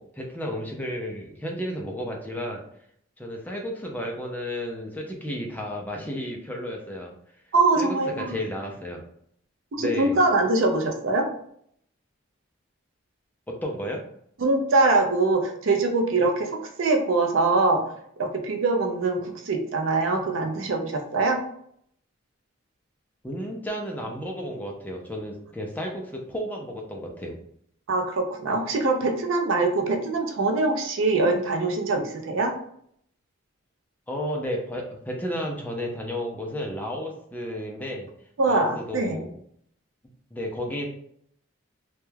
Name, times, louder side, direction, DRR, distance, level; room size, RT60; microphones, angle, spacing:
voice 1, 0.0-2.6 3.2-7.1 7.8-9.0 9.8-10.2 13.5-14.0 23.2-27.3 34.1-38.1 38.5-39.3 40.3-40.9, equal, 10° left, 0 dB, 0.3 m, -32 dB
voice 2, 7.5-8.4 9.7-11.3 14.4-17.9 18.2-21.4 27.9-32.6 38.4-39.2, right 3 dB, 75° right, 4 dB, 0.5 m, -23 dB
2.2 x 2.1 x 3.1 m, 0.67 s
head